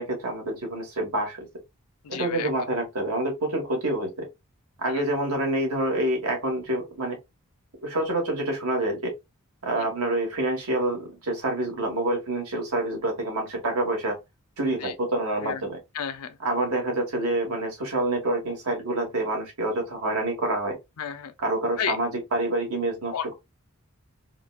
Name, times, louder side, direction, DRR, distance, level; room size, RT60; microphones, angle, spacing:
voice 1, 0.0-1.4 2.1-4.3 4.8-7.2 7.8-9.1 9.6-14.2 14.6-15.8 16.4-20.8 21.4-23.3, right 1 dB, 85° right, 1.5 m, -27 dB
voice 2, 2.0-2.5 4.9-5.0 9.8-9.9 14.8-14.9 15.4-15.6 15.9-16.4 21.0-21.3 21.8-22.0 23.1-23.3, left 8 dB, 85° left, 0.5 m, -32 dB
3.8 x 2.2 x 2.3 m
head